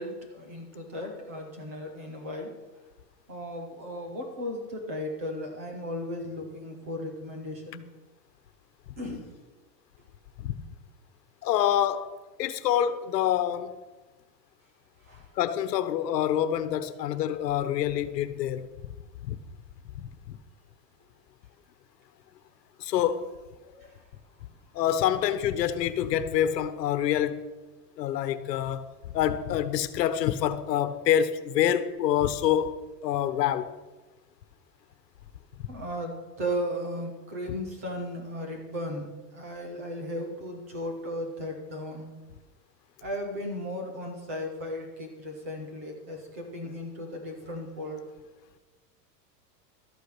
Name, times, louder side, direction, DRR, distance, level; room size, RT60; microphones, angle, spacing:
voice 1, 0.0-2.5 3.3-7.8 9.0-9.3 15.1-15.3 23.6-23.9 35.7-42.1 43.0-48.0, equal, 10° right, 0.3 m, -36 dB
voice 2, 11.4-12.1 12.4-13.7 15.4-18.6 19.2-19.4 20.0-20.4 22.8-23.3 24.7-27.4 28.0-28.8 29.1-32.8 33.0-33.7, left 10 dB, 80° left, 1.2 m, -26 dB
13.0 x 8.5 x 6.1 m
supercardioid pair, 165°, 48 cm